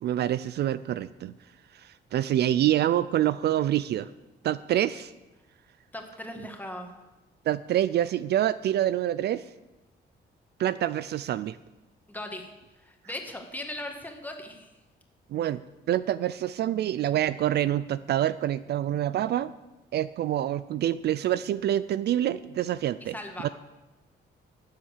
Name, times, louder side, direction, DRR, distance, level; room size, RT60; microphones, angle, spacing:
voice 1, 0.0-1.3 1.7-4.1 4.4-5.1 7.5-9.4 10.6-11.6 15.3-15.6 15.9-19.5 19.9-23.2 23.4-23.5, right 12 dB, 65° right, 15 dB, 0.4 m, -26 dB
voice 2, 5.9-7.0 12.1-12.5 12.8-14.7 23.1-23.5, left 1 dB, 10° left, 3 dB, 1.7 m, -38 dB
12.0 x 7.5 x 6.6 m, 1.1 s
cardioid pair, 110°, 19 cm